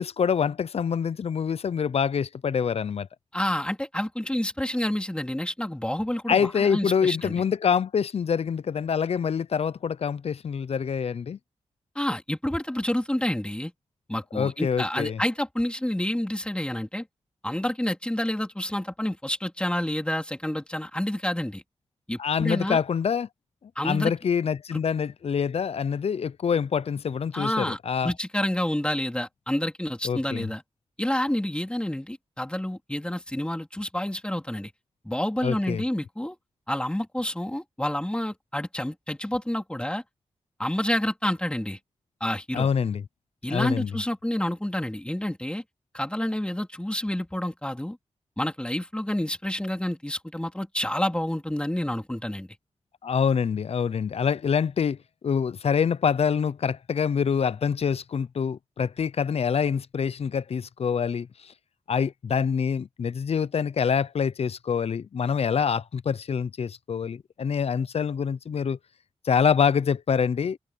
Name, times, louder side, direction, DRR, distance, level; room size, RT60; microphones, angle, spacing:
voice 1, 0.0-3.1 6.3-11.4 14.3-15.2 22.2-23.3 23.8-28.1 30.0-30.5 35.4-35.8 42.5-43.0 43.5-43.9 53.0-55.0 55.2-61.5 61.9-68.8 69.2-70.6, left 6 dB, 65° left, 0.6 m, -26 dB
voice 2, 3.3-7.4 12.0-13.7 14.1-17.1 17.4-21.6 22.1-22.8 23.8-24.1 24.7-24.8 27.3-30.6 31.0-34.7 35.1-36.4 36.7-40.0 40.6-41.8 42.2-42.7 43.4-45.6 45.9-48.0 48.4-52.5, left 1 dB, 10° left, 3.7 m, -29 dB
cardioid pair, 75°, 11 cm